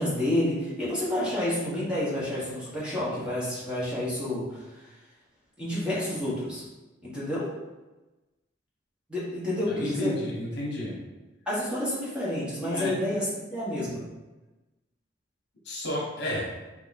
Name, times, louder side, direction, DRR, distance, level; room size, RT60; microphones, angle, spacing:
voice 1, 0.0-4.6 5.6-6.6 7.0-7.5 9.1-10.1 11.5-14.0, left 1 dB, 5° right, -8 dB, 1.3 m, -29 dB
voice 2, 9.7-11.0 12.6-12.9 15.6-16.5, left 1 dB, 65° left, -4 dB, 1.1 m, -32 dB
3.6 x 3.0 x 4.1 m, 1.1 s
head